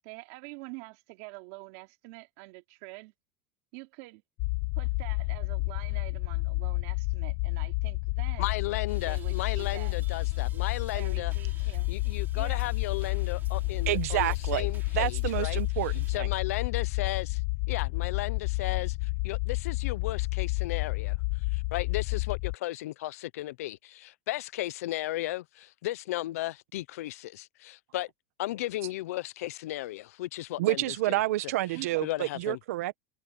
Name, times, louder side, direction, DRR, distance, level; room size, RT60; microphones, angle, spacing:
voice 1, 0.0-3.1 3.7-4.2 4.8-8.6 9.0-10.0 10.9-11.9 12.3-12.7 31.7-32.0, right 26 dB, 65° right, 3.4 m, -46 dB
sound 1, 4.4-22.6, left 25 dB, 55° left, 1.0 m, -30 dB
voice 2, 8.4-11.3 11.9-15.6 16.1-17.4 17.7-21.2 21.5-28.1 28.4-31.2 32.0-32.6, left 16 dB, 85° left, 0.7 m, -35 dB
sound 2, 8.9-16.2, right 7 dB, 25° right, 3.1 m, -51 dB
voice 3, 13.9-14.7 14.9-16.3 30.6-33.0, right 16 dB, 85° right, 1.3 m, -29 dB
supercardioid pair, 140°, 8 cm